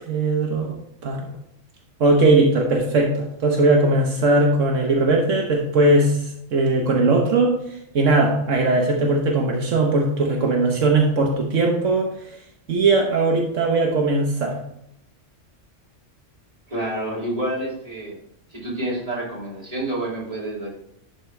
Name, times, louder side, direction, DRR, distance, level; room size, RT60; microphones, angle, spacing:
voice 1, 0.1-0.8 1.0-1.3 2.0-7.6 7.9-12.1 12.7-14.6, right 2 dB, 75° right, 0 dB, 1.4 m, -19 dB
voice 2, 16.7-18.2 18.5-20.7, right 1 dB, 30° right, -5 dB, 2.9 m, -28 dB
12.0 x 4.5 x 3.3 m, 0.75 s
omnidirectional pair, 1.3 m